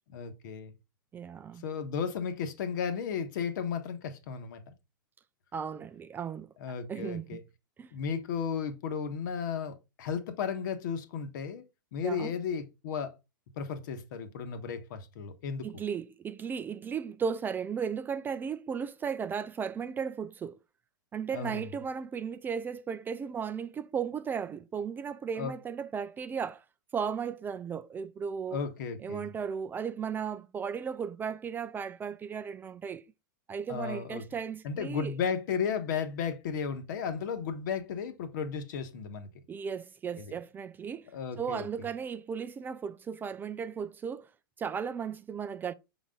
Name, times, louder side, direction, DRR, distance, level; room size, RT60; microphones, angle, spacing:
voice 1, 0.1-0.7 1.6-4.7 6.6-7.4 7.9-11.6 11.9-13.1 13.6-15.7 21.3-21.7 25.4-25.5 28.5-29.3 33.7-34.2 34.6-39.3 40.2-40.3 41.1-41.7, left 6 dB, 60° left, 1.2 m, -34 dB
voice 2, 1.1-1.6 5.5-6.5 6.9-7.4 7.8-7.9 12.0-12.3 15.6-20.6 21.1-26.6 26.9-28.6 29.0-33.0 33.5-35.2 39.5-41.1 41.4-44.3 44.6-45.7, right 7 dB, 15° right, 0.4 m, -35 dB
6.1 x 4.1 x 3.8 m
hypercardioid pair, 115°, 11 cm